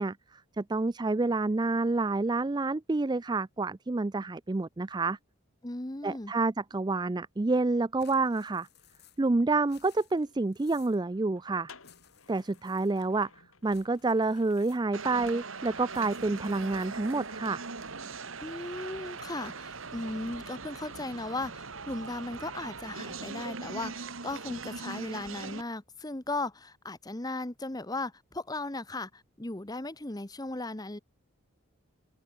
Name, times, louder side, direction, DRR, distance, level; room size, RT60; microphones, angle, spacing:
voice 1, 0.0-5.2 6.0-8.7 9.2-11.7 12.3-13.3 13.6-17.6, right 3 dB, 20° right, 0.4 m, -28 dB
voice 2, 5.6-6.3 18.4-31.0, left 2 dB, 20° left, 1.0 m, -37 dB
sound 1, 8.0-9.3 9.6-11.0 11.8-13.3 13.6-15.1 15.9-17.3, left 9 dB, 50° left, 6.0 m, -61 dB
sound 2, 8.6-22.8 23.1-24.6 24.8-25.2, left 4 dB, 75° left, 3.7 m, -60 dB
sound 3, 14.9-25.6, right 4 dB, 70° right, 1.9 m, -41 dB
head